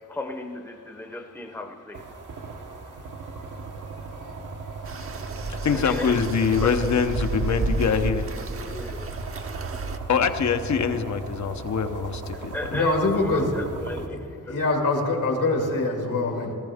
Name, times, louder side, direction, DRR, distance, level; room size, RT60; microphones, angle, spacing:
voice 1, 0.1-2.0 5.6-6.2 6.6-6.9 8.7-9.1 12.3-14.5, left 2 dB, 5° left, 5 dB, 0.8 m, -36 dB
sound 1, 1.9-14.1, right 3 dB, 75° right, 1.2 m, -37 dB
sound 2, 4.9-10.0, right 3 dB, 45° right, 0.9 m, -32 dB
voice 2, 5.5-8.3 10.1-12.8, left 6 dB, 60° left, 8 dB, 0.9 m, -24 dB
voice 3, 12.7-13.5 14.1-14.2 14.5-16.5, left 2 dB, 75° left, 1 dB, 2.4 m, -24 dB
19.0 x 13.5 x 3.6 m, 2.5 s
cardioid pair, 85°, 32 cm